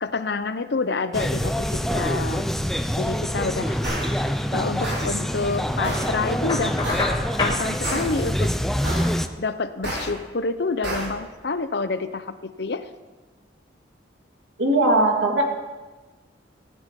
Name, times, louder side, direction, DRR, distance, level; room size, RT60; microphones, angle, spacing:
voice 1, 0.0-2.5 3.0-3.9 4.5-6.8 7.4-8.5 9.4-12.9, left 3 dB, 60° left, 12 dB, 0.7 m, -28 dB
sound 1, 1.1-9.3, equal, ahead, 0.4 m, -26 dB
sound 2, 3.8-4.0 4.8-5.0 5.8-6.0 6.8-7.0 7.8-8.0 8.8-9.0 9.8-10.0 10.8-11.0, right 1 dB, 65° right, 5.8 m, -28 dB
Knock, 6.5-7.6, left 3 dB, 25° left, 2.0 m, -26 dB
voice 2, 14.6-15.4, right 2 dB, 85° right, 1 dB, 2.4 m, -19 dB
16.0 x 10.5 x 5.3 m, 1.3 s
head